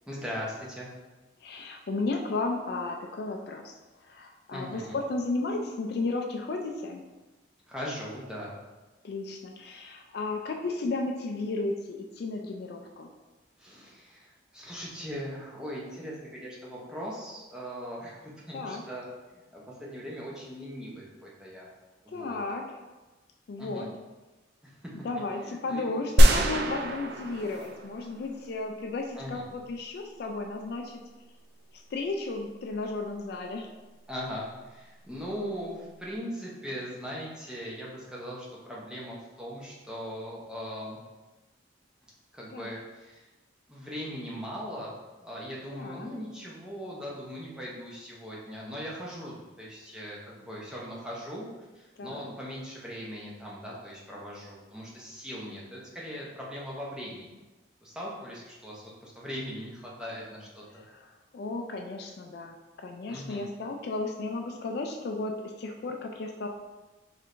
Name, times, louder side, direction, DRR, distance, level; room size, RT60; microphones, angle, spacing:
voice 1, 0.1-0.9 4.5-5.0 7.7-8.5 13.6-21.7 22.0-22.4 23.6-23.9 24.6-25.1 25.5-25.9 29.1-29.5 34.1-41.0 42.3-43.3 43.7-51.5 51.7-57.3 57.8-60.8 63.1-63.5, equal, 5° right, -6 dB, 0.7 m, -39 dB
voice 2, 1.4-3.7 4.0-7.0 9.0-13.1 18.5-18.8 22.1-22.6 23.5-23.9 24.9-31.0 31.7-33.7 42.5-42.7 45.7-46.1 52.0-52.3 60.9-66.5, left 3 dB, 55° left, 3 dB, 0.3 m, -34 dB
sound 1, 26.2-28.5, equal, 55° right, 0.4 m, -22 dB
4.5 x 3.3 x 2.5 m, 1.2 s
head